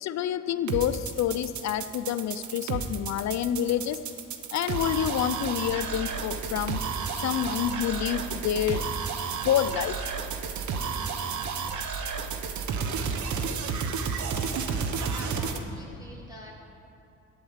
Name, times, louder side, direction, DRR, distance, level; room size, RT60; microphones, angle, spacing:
voice 1, 0.0-4.0 4.5-6.8 7.2-8.8 9.4-9.9, left 10 dB, 65° left, 12 dB, 0.6 m, -28 dB
sound 1, 0.7-15.6, right 5 dB, 70° right, 1.0 m, -31 dB
voice 2, 14.6-16.6, left 1 dB, 15° right, -4 dB, 2.4 m, -45 dB
9.0 x 8.7 x 7.4 m, 2.9 s
cardioid pair, 90°, 30 cm